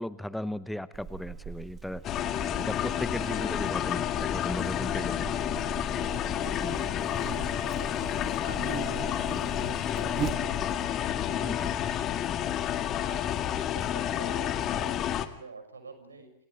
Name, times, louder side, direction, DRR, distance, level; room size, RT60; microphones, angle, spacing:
voice 1, 0.0-2.3 2.6-5.3 6.5-6.9 11.4-11.7, left 1 dB, ahead, 16 dB, 0.8 m, -36 dB
Buzz, 0.9-10.9, right 7 dB, 25° right, 1.9 m, -41 dB
voice 2, 1.9-2.4 3.2-3.6 6.4-11.9 12.2-12.5 13.0-16.3, right 4 dB, 75° right, 8 dB, 6.2 m, -49 dB
sound 1, 2.0-15.3, left 10 dB, 30° left, 1.9 m, -30 dB
29.5 x 28.0 x 3.4 m, 0.65 s
figure-of-eight pair, 90°, 0 cm